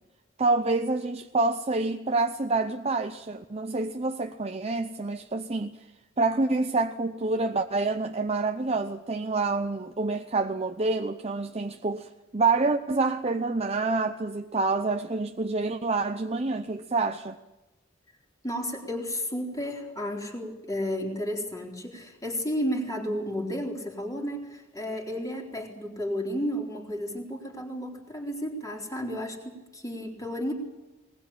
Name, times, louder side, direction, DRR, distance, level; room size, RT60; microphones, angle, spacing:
voice 1, 0.4-5.8 6.2-17.4, right 3 dB, 30° right, 0.8 m, -27 dB
voice 2, 18.4-30.5, equal, 20° left, 4.0 m, -32 dB
20.5 x 20.0 x 8.7 m
head